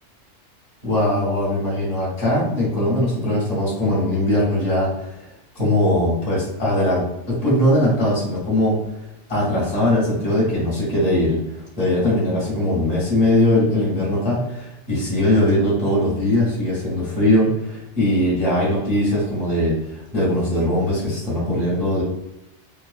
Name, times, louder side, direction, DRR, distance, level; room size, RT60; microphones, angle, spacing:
voice 1, 0.8-5.2 5.5-8.7 9.3-22.0, left 1 dB, 30° left, -7 dB, 1.3 m, -20 dB
3.0 x 2.2 x 2.4 m, 0.89 s
omnidirectional pair, 1.3 m